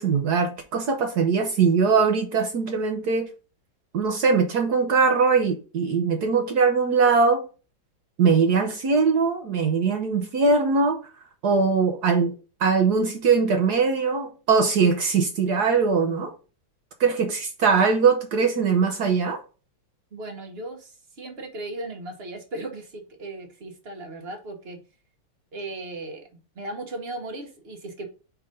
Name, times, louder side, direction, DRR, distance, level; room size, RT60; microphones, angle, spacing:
voice 1, 0.0-3.3 3.9-7.4 8.2-11.0 11.4-12.3 12.6-16.3 17.0-19.4, right 5 dB, 60° right, 1.1 m, -21 dB
voice 2, 20.1-24.8 25.5-28.1, right 2 dB, 40° right, 1.0 m, -37 dB
5.0 x 4.7 x 5.1 m
omnidirectional pair, 2.4 m